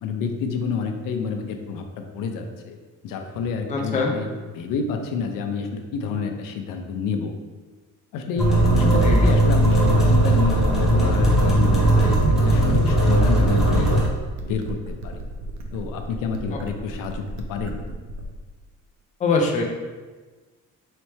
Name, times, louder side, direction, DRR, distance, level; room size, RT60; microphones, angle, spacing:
voice 1, 0.0-1.9 2.1-2.8 3.0-4.3 4.5-7.3 8.1-12.2 12.4-14.0 14.4-15.2 15.7-17.8, left 5 dB, 90° left, 5 dB, 0.6 m, -29 dB
voice 2, 3.7-4.1 9.0-9.3 16.5-16.6 19.2-19.6, left 3 dB, 25° left, 1 dB, 0.4 m, -23 dB
sound 1, 8.4-14.0, right 1 dB, ahead, 0.9 m, -18 dB
sound 2, 8.6-18.5, right 1 dB, 60° right, 0.5 m, -35 dB
4.2 x 3.2 x 3.2 m, 1.3 s
cardioid pair, 170°, 32 cm